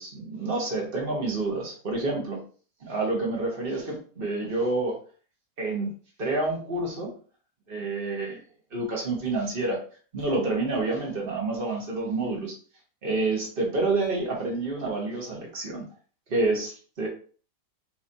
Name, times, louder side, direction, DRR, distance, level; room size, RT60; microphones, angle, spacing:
voice 1, 0.0-2.4 2.8-5.0 5.6-5.9 6.2-7.1 7.7-8.4 8.7-9.8 10.1-12.5 13.0-15.9 16.3-17.1, right 2 dB, 40° right, -1 dB, 1.7 m, -28 dB
6.0 x 3.1 x 2.9 m, 0.40 s
omnidirectional pair, 1.5 m